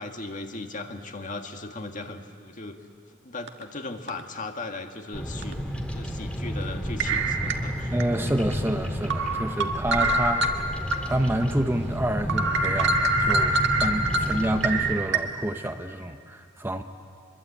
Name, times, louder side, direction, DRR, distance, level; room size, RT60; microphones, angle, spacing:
voice 1, 0.0-2.9 3.2-5.6 5.9-7.9, left 2 dB, 40° left, 4 dB, 1.7 m, -37 dB
sound 1, 3.5-3.6 4.1-4.2 5.4-5.5 7.0-8.0 8.5-8.6 9.1-11.0 11.4-11.5 11.9-12.0 12.3-15.2, right 2 dB, 60° right, 1.6 m, -25 dB
Bird vocalization bird call bird song, 5.1-15.0, equal, 5° left, 2.1 m, -31 dB
voice 2, 7.9-10.7 11.1-16.8, right 1 dB, 10° right, 6 dB, 0.8 m, -28 dB
25.5 x 22.0 x 8.4 m, 2.5 s
head